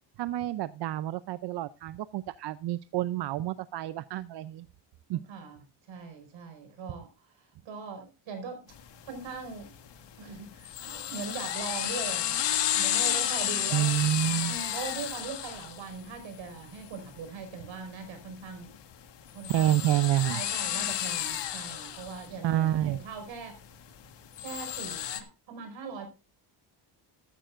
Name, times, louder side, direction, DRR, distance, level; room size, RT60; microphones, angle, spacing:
voice 1, 0.2-4.7 5.1-5.2 13.7-14.6 19.5-20.4 22.4-23.0, right 13 dB, 60° right, 14 dB, 0.6 m, -28 dB
voice 2, 5.1-5.6 5.9-8.7 9.0-9.7 10.2-14.0 14.5-18.7 19.3-19.8 20.3-23.6 24.4-26.1, right 5 dB, 75° right, 7 dB, 5.2 m, -41 dB
sound 1, 8.7-25.2, left 11 dB, 65° left, 1.6 m, -34 dB
13.5 x 13.5 x 2.5 m, 0.29 s
cardioid pair, 160°, 46 cm